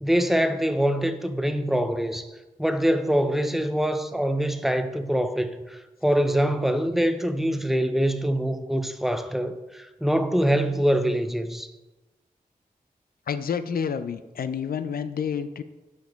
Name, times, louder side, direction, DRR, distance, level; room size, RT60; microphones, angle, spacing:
voice 1, 0.0-2.3 2.6-11.7, equal, ahead, 0.5 m, -24 dB
voice 2, 13.3-15.6, left 7 dB, 75° left, 0.4 m, -29 dB
5.7 x 5.1 x 3.4 m
cardioid pair, 45°, 16 cm